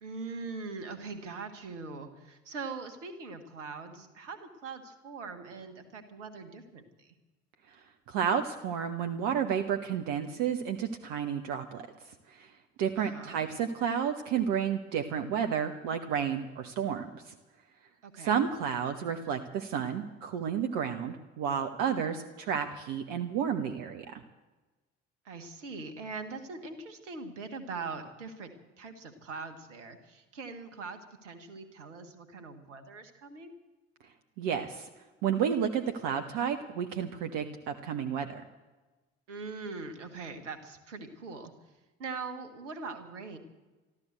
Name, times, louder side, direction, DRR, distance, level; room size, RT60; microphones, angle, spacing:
voice 1, 0.0-7.1 13.0-13.4 18.0-18.4 25.2-33.5 39.3-41.5 42.0-43.4, right 4 dB, 75° right, 7 dB, 1.6 m, -42 dB
voice 2, 8.1-11.9 12.3-12.5 12.8-17.3 18.2-24.2 34.4-34.9 35.2-38.4, right 8 dB, 55° right, 6 dB, 1.0 m, -31 dB
13.0 x 12.5 x 8.0 m, 1.2 s
figure-of-eight pair, 50°, 37 cm